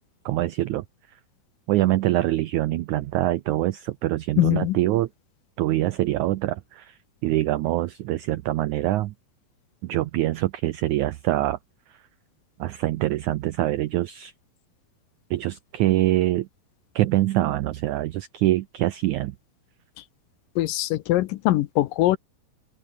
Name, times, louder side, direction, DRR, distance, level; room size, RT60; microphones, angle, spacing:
voice 1, 0.3-0.8 1.7-5.1 5.6-9.1 9.8-11.6 12.6-14.3 15.3-16.5 17.0-19.4, right 16 dB, 90° right, 1.6 m, -24 dB
voice 2, 4.4-4.8 20.0-20.1 20.6-22.2, left 16 dB, 75° left, 2.2 m, -22 dB
open air
omnidirectional pair, 4.4 m